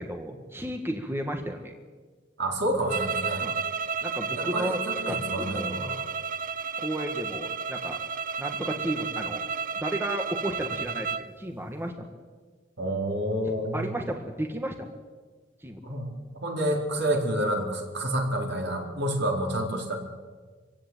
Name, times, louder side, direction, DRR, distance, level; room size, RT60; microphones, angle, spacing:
voice 1, 0.0-1.7 3.4-3.5 4.0-6.0 6.8-8.0 8.4-9.4 9.7-11.1 11.4-12.1 13.7-14.9 15.6-15.8, right 1 dB, 10° right, 4 dB, 1.6 m, -33 dB
voice 2, 2.4-3.5 4.3-6.0 12.8-13.9 15.8-16.1 16.4-19.9, right 1 dB, 60° right, 1 dB, 4.3 m, -29 dB
sound 1, 2.9-11.3, right 6 dB, 45° right, 0.8 m, -32 dB
25.5 x 16.5 x 9.0 m, 1.5 s
head